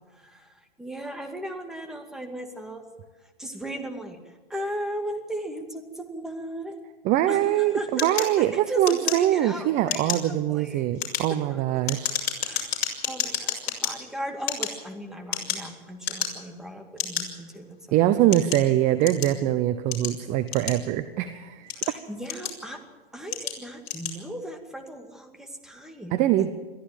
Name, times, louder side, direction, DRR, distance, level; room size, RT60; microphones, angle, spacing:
voice 1, 0.0-2.8 3.2-6.8 7.2-10.9 11.5-12.0 12.4-12.8 13.0-17.8 18.0-18.2 21.7-22.8 23.1-26.2, equal, ahead, 4 dB, 2.3 m, -36 dB
voice 2, 7.0-12.1 17.9-21.7 26.1-26.5, right 13 dB, 25° right, 12 dB, 0.8 m, -23 dB
sound 1, 8.0-9.5 9.8-10.3 10.8-13.9 14.4-15.7 16.0-16.5 17.0-17.2 17.9-19.4 19.9-21.1 21.5-22.8 23.3-23.6 23.8-24.2, left 8 dB, 50° left, 5.9 m, -30 dB
22.5 x 14.5 x 9.0 m, 1.3 s
hypercardioid pair, 140°, 30 cm